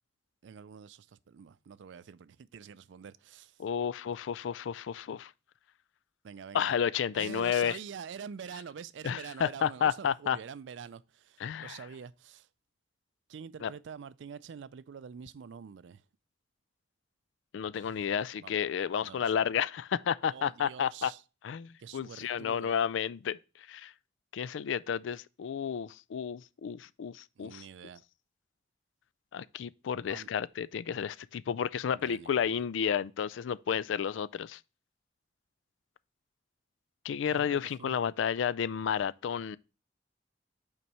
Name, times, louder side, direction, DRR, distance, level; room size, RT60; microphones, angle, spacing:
voice 1, 0.4-3.6 6.2-6.7 7.1-12.5 13.3-16.0 17.7-18.0 18.4-18.6 19.0-19.3 20.2-21.2 21.8-22.8 27.4-28.0 30.1-30.3 31.9-32.6 37.3-38.0, right 7 dB, 75° right, 0.4 m, -46 dB
voice 2, 3.6-5.3 6.5-7.8 9.0-10.4 11.4-11.8 13.6-13.7 17.5-21.1 21.4-23.4 23.7-23.9 24.3-27.6 29.3-34.6 37.0-39.6, left 8 dB, 85° left, 0.3 m, -31 dB
5.6 x 4.5 x 5.4 m
head